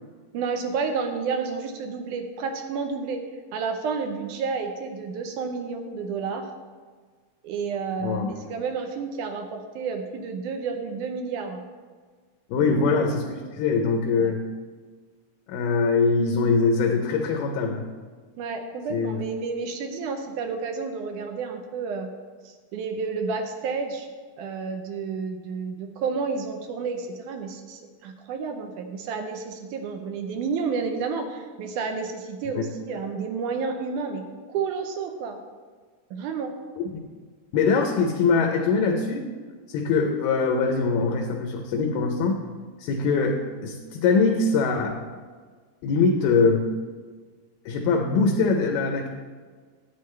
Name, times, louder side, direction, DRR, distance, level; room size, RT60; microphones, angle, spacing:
voice 1, 0.3-3.2 3.5-6.5 7.4-11.6 12.7-12.9 14.2-14.3 18.4-22.1 22.4-24.1 24.4-35.4 36.1-36.5, right 5 dB, 75° right, 5 dB, 2.1 m, -30 dB
voice 2, 8.0-8.3 12.5-14.4 15.5-17.8 18.9-19.2 32.6-32.7 37.5-39.3 39.7-42.4 42.8-45.0 45.8-46.7 47.7-49.1, left 4 dB, 85° left, 2 dB, 2.4 m, -23 dB
11.0 x 8.8 x 3.2 m, 1.5 s
omnidirectional pair, 3.8 m